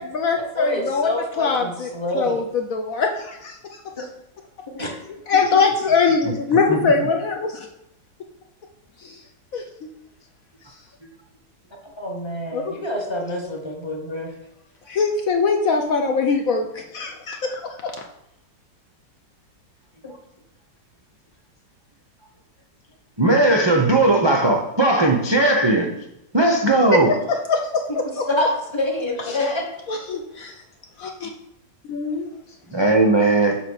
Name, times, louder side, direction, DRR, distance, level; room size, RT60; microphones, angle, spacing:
voice 1, 0.0-1.1 1.4-4.0 5.3-7.5 9.0-9.2 9.5-9.6 12.5-12.7 14.9-17.9 26.9-28.2 29.9-30.6 31.0-31.3 31.9-32.3, left 4 dB, 60° left, 3 dB, 1.0 m, -22 dB
voice 2, 0.6-2.4 4.0-4.1 4.7-5.0 12.0-14.3 20.0-20.1 28.0-29.6, left 1 dB, 20° left, 1 dB, 1.0 m, -27 dB
voice 3, 23.2-25.9 26.3-27.1 32.7-33.6, right 2 dB, 40° right, 0 dB, 0.3 m, -17 dB
7.4 x 3.6 x 6.4 m, 0.80 s
omnidirectional pair, 1.9 m